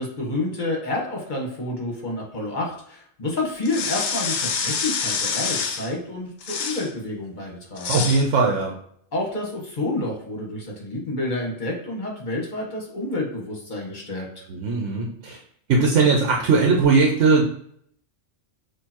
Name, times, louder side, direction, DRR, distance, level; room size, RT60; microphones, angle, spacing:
voice 1, 0.0-8.0 9.1-14.5, left 2 dB, 40° left, -1 dB, 1.4 m, -29 dB
sound 1, 3.6-5.9 6.4-6.9 7.8-8.3, left 6 dB, 75° left, 0.9 m, -26 dB
voice 2, 7.9-8.7 14.5-15.4 15.7-17.4, right 4 dB, 75° right, 0 dB, 1.1 m, -19 dB
6.5 x 2.7 x 2.9 m, 0.67 s
omnidirectional pair, 1.2 m